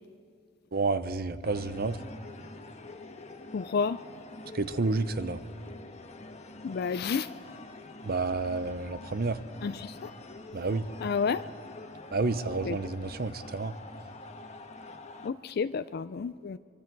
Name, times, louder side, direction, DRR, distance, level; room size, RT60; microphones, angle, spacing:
voice 1, 0.7-2.0 4.5-5.4 8.0-9.4 10.5-10.9 12.1-13.7, right 3 dB, 55° right, 13 dB, 0.8 m, -30 dB
sound 1, 1.4-15.3, left 2 dB, 35° left, 1.3 m, -46 dB
voice 2, 3.5-4.0 6.6-7.3 9.6-10.1 11.0-11.4 12.6-12.8 15.2-16.6, left 5 dB, 55° left, 12 dB, 0.4 m, -30 dB
24.0 x 23.5 x 4.7 m, 2.1 s
head